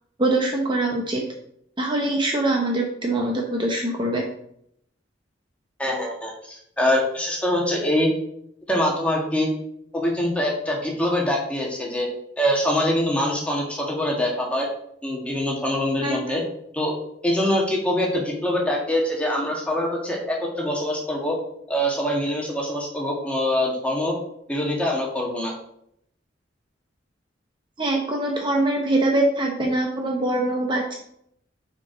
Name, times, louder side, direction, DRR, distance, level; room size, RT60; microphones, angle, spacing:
voice 1, 0.2-1.2 1.8-4.2 16.0-16.4 27.8-30.9, right 2 dB, 25° right, 0 dB, 0.8 m, -23 dB
voice 2, 5.8-8.1 8.7-9.5 9.9-12.1 12.4-14.7 15.0-16.4 16.7-16.9 17.2-21.3 21.7-24.1 24.5-25.5, left 1 dB, 5° left, -2 dB, 1.5 m, -24 dB
5.9 x 4.6 x 4.9 m, 0.72 s
head